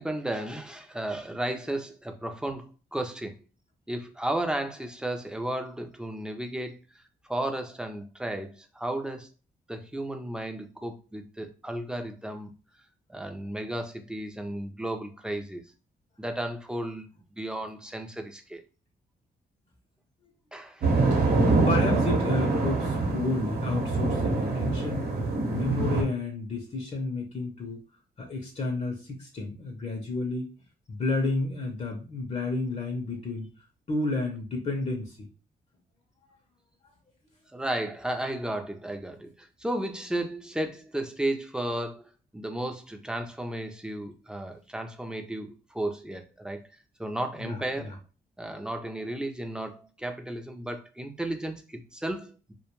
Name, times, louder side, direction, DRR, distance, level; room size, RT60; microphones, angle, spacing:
voice 1, 0.0-3.3 3.9-6.8 7.3-9.3 9.7-12.5 13.1-15.6 16.2-18.6 20.5-20.9 37.5-42.0 42.3-46.7 47.0-47.9 48.4-52.5, right 1 dB, 5° right, 0.4 m, -34 dB
sound 1, 20.8-26.0, right 3 dB, 65° right, 0.8 m, -25 dB
voice 2, 21.7-25.1 25.5-27.8 28.2-30.5 30.9-33.5 33.9-35.2 47.4-47.9, left 3 dB, 40° left, 0.6 m, -31 dB
2.2 x 2.2 x 3.0 m
cardioid pair, 95°, 17 cm